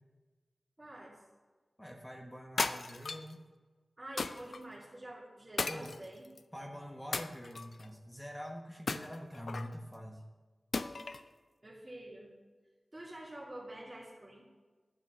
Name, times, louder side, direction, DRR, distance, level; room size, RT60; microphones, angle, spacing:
voice 1, 0.8-1.2 4.0-6.3 11.6-12.3 12.9-14.5, right 1 dB, 30° right, -7 dB, 2.7 m, -47 dB
voice 2, 1.8-3.4 5.6-5.9 6.5-10.2, equal, 5° left, 1 dB, 1.2 m, -45 dB
sound 1, 2.6-3.3 4.2-4.6 5.6-6.4 7.1-7.9 8.9-9.7 10.7-11.3, left 3 dB, 70° left, 0.5 m, -36 dB
11.5 x 8.4 x 6.3 m, 1.4 s
wide cardioid pair, 75°, 0 cm